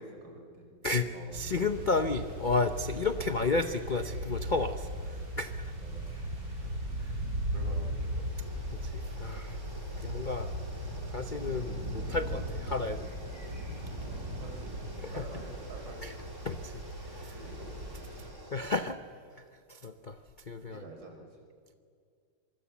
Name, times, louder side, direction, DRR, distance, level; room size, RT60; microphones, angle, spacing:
voice 1, 0.0-0.7 1.1-1.6 3.1-3.3 5.8-6.3 6.6-6.8 7.1-8.5 14.0-14.7 15.1-16.0 16.6-16.7 17.3-18.4 20.6-21.4, right 2 dB, 85° right, 2 dB, 5.6 m, -49 dB
voice 2, 0.8-4.9 5.4-5.7 8.7-9.6 10.0-10.5 11.1-13.1 15.0-15.2 16.0-16.1 16.4-16.7 17.1-17.3 18.5-19.0 19.7-20.2 20.5-20.8, left 3 dB, 55° left, 9 dB, 0.5 m, -32 dB
sound 1, 1.3-18.3, equal, 55° right, 5.1 m, -38 dB
sound 2, 7.0-18.6, right 1 dB, 10° right, 1.7 m, -49 dB
25.0 x 24.0 x 7.2 m, 2.2 s
omnidirectional pair, 2.2 m